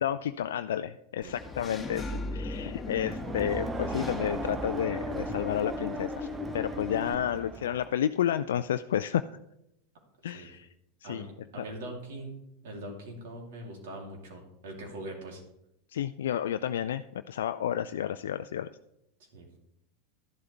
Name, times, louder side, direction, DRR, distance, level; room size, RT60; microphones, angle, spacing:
voice 1, 0.0-6.3 6.5-9.2 10.2-10.7 11.0-11.3 15.9-18.7, left 10 dB, 70° left, 10 dB, 0.3 m, -31 dB
Engine / Mechanisms, 1.2-7.1, left 3 dB, 15° left, 1.8 m, -37 dB
Crowd, 2.8-8.0, right 5 dB, 25° right, 0.6 m, -39 dB
voice 2, 11.0-15.4 19.3-19.5, right 1 dB, 65° right, 1 dB, 3.0 m, -42 dB
12.5 x 11.0 x 3.4 m, 0.83 s
hypercardioid pair, 85°, 0 cm